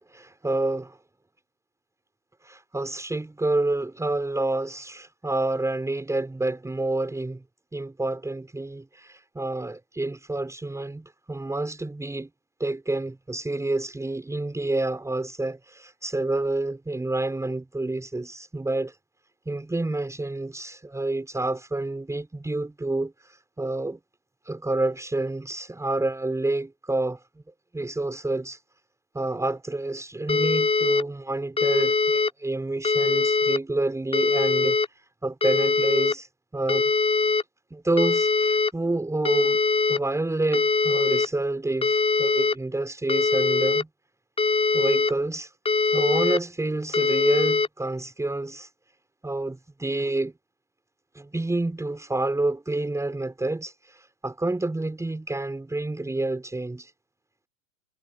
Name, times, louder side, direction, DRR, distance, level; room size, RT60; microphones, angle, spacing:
voice 1, 0.1-1.0 2.4-7.4 7.7-12.3 12.6-18.9 19.5-23.1 23.6-24.0 24.5-27.2 27.7-28.6 29.1-34.8 35.2-36.3 36.5-36.9 37.7-39.6 39.9-43.9 44.7-45.5 45.9-48.7 49.2-50.3 51.1-56.9, right 2 dB, 5° right, 6.2 m, -28 dB
sound 1, 30.3-31.0 31.6-32.3 32.8-33.6 34.1-34.9 35.4-36.1 36.7-37.4 38.0-38.7 39.2-40.0 40.5-41.3 41.8-42.5 43.1-43.8 44.4-45.1 45.7-46.4 46.9-47.7, left 4 dB, 15° left, 5.7 m, -22 dB
hypercardioid pair, 110°, 41 cm